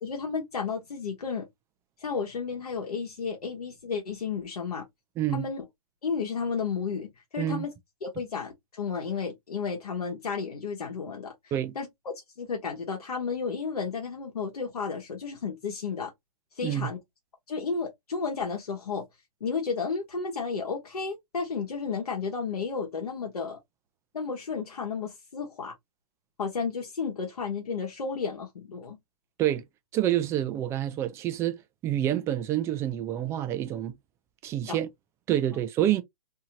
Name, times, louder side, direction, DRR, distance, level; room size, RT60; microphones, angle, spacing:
voice 1, 0.0-1.5 2.0-4.8 5.3-5.6 6.0-7.7 8.0-11.3 11.7-11.9 12.4-16.1 16.6-17.0 17.5-19.0 19.4-23.6 24.1-25.7 26.4-29.0 34.7-34.8, left 5 dB, 75° left, 1.0 m, -32 dB
voice 2, 5.2-5.5 7.4-7.7 11.5-11.8 16.6-16.9 29.4-29.6 29.9-34.0 34.4-34.9 35.3-36.0, right 12 dB, 15° right, 0.3 m, -27 dB
2.7 x 2.7 x 2.7 m
hypercardioid pair, 125°, 20 cm